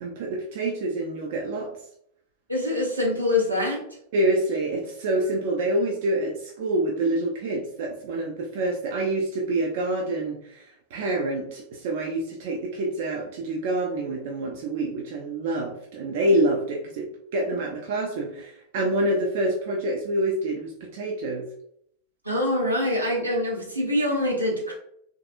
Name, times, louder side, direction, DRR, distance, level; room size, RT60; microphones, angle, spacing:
voice 1, 0.0-1.7 4.1-21.4, right 1 dB, 50° right, 0 dB, 0.5 m, -27 dB
voice 2, 2.5-3.8 22.2-24.7, left 1 dB, 85° right, -3 dB, 0.9 m, -24 dB
3.2 x 2.6 x 2.4 m, 0.68 s
figure-of-eight pair, 90°, 0 cm